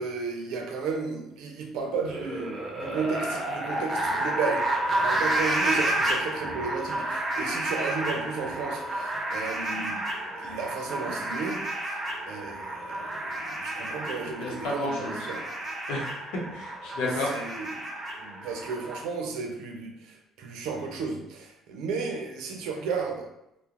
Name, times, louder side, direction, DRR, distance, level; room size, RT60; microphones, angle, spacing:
voice 1, 0.0-10.1 10.4-11.6 12.3-15.4 17.0-17.8 18.2-23.3, right 4 dB, 85° right, 2 dB, 0.5 m, -34 dB
sound 1, 2.0-19.0, right 1 dB, 30° right, 0.5 m, -31 dB
voice 2, 14.4-15.3 15.9-17.4, left 2 dB, 90° left, -3 dB, 0.7 m, -31 dB
2.4 x 2.1 x 2.9 m, 0.84 s
cardioid pair, 125°, 0 cm